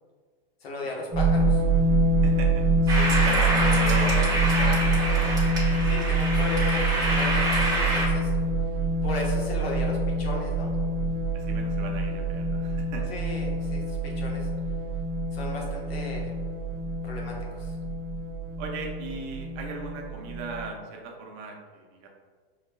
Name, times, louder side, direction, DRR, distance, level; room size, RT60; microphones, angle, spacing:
voice 1, 0.6-1.6 2.9-3.2 5.8-8.3 9.0-10.7 13.1-14.5 15.3-16.4 17.0-17.8, left 2 dB, 85° left, -2 dB, 1.2 m, -36 dB
sound 1, 1.1-20.7, right 2 dB, 15° left, 1.4 m, -25 dB
sound 2, 2.9-8.1, right 1 dB, 10° right, 0.9 m, -27 dB
voice 2, 3.2-6.1 11.3-13.0 18.6-22.1, right 4 dB, 40° right, 1 dB, 0.7 m, -37 dB
4.7 x 3.2 x 2.2 m, 1.5 s
supercardioid pair, 140°, 30 cm